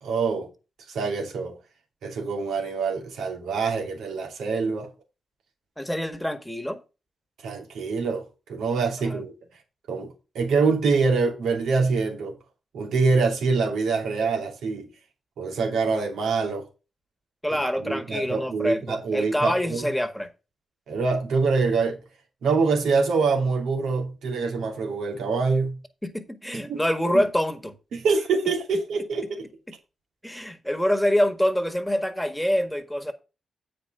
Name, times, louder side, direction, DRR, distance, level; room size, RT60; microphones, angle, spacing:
voice 1, 0.0-0.5 0.9-1.6 2.0-4.9 7.4-8.2 8.5-9.3 9.9-12.3 12.7-14.9 15.4-16.7 17.7-19.9 20.9-22.0 22.4-25.8 26.5-26.8 27.1-27.2 27.9-29.5, right 4 dB, 80° right, 2.7 m, -25 dB
voice 2, 5.8-6.8 9.0-9.2 17.4-20.3 26.0-27.8 29.7-29.8 30.2-33.1, equal, 5° left, 1.8 m, -26 dB
8.3 x 5.2 x 5.5 m
supercardioid pair, 55°, 0 cm